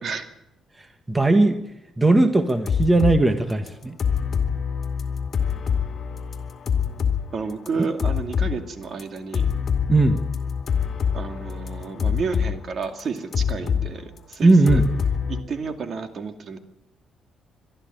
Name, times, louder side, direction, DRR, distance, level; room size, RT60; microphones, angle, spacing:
voice 1, 1.1-1.6 2.0-4.0 9.9-10.2 14.4-14.8, right 2 dB, 20° right, 8 dB, 1.5 m, -18 dB
sound 1, 2.5-3.2 3.7-7.2 7.5-8.6 9.0-9.1 9.3-12.6 12.8-13.9 14.2-15.4, left 7 dB, 50° left, 2.4 m, -25 dB
voice 2, 7.3-9.5 11.1-14.8 15.3-16.6, right 5 dB, 50° right, 7 dB, 2.4 m, -31 dB
22.5 x 13.0 x 9.0 m, 0.88 s
cardioid pair, 90°, 0 cm